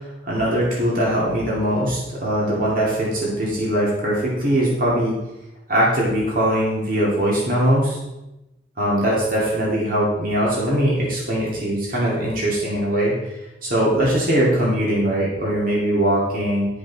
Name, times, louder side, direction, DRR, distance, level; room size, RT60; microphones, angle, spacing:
voice 1, 0.2-5.1 5.7-8.0 8.8-13.1 13.6-16.7, right 1 dB, 50° right, -5 dB, 2.4 m, -21 dB
11.5 x 5.3 x 4.1 m, 0.96 s
head